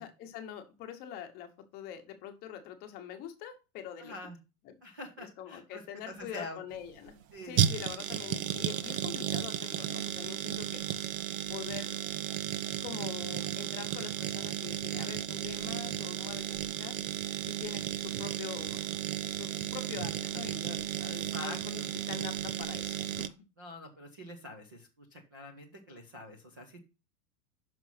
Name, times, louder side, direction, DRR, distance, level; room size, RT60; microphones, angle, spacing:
voice 1, 0.0-4.1 4.6-4.7 5.2-7.2 7.4-10.8 11.5-12.0 12.8-16.9 17.4-18.8 19.3-23.3, left 9 dB, 20° left, 5 dB, 1.0 m, -44 dB
voice 2, 4.0-4.4 4.8-6.6 7.3-7.8 21.0-21.9 23.6-26.8, left 2 dB, 15° right, 3 dB, 0.3 m, -46 dB
sound 1, 6.7-23.3, right 11 dB, 65° right, 0.8 m, -34 dB
6.1 x 5.2 x 5.7 m, 0.28 s
supercardioid pair, 170°, 44 cm